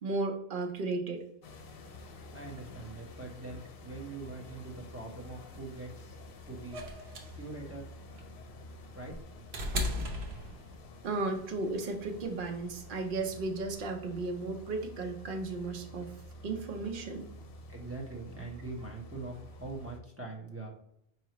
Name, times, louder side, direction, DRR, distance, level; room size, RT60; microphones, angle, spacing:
voice 1, 0.0-1.2 11.0-16.1 16.4-17.3, right 3 dB, 60° right, 4 dB, 0.8 m, -34 dB
sound 1, 1.4-20.0, left 1 dB, 70° left, 0.8 m, -49 dB
voice 2, 2.3-6.2 6.5-6.8 7.4-7.9 8.9-9.2 17.7-20.7, right 3 dB, 15° right, -1 dB, 0.7 m, -43 dB
sound 2, 6.7-11.0 12.2-12.3, left 1 dB, 85° right, 1.0 m, -36 dB
4.6 x 2.9 x 2.9 m, 0.71 s
omnidirectional pair, 1.0 m